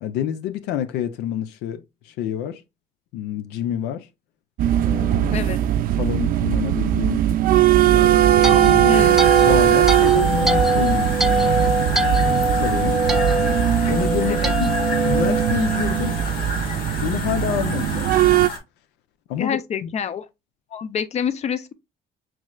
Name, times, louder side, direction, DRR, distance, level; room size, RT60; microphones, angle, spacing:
voice 1, 0.0-2.6 3.1-4.1 4.8-5.4 6.0-7.3 7.9-8.9 9.4-11.1 11.8-13.0 13.8-14.8 15.0-16.2 17.0-18.2 19.3-19.9, left 10 dB, 85° left, 0.5 m, -28 dB
sound 1, 4.6-18.5, right 12 dB, 60° right, 0.4 m, -19 dB
sound 2, 7.9-16.3, right 2 dB, ahead, 0.7 m, -23 dB
voice 2, 8.8-9.2 14.3-14.5 19.3-20.3 20.7-21.7, left 7 dB, 40° left, 0.6 m, -27 dB
sound 3, 8.9-18.6, left 3 dB, 60° left, 1.6 m, -31 dB
6.0 x 3.1 x 2.2 m
cardioid pair, 110°, 17 cm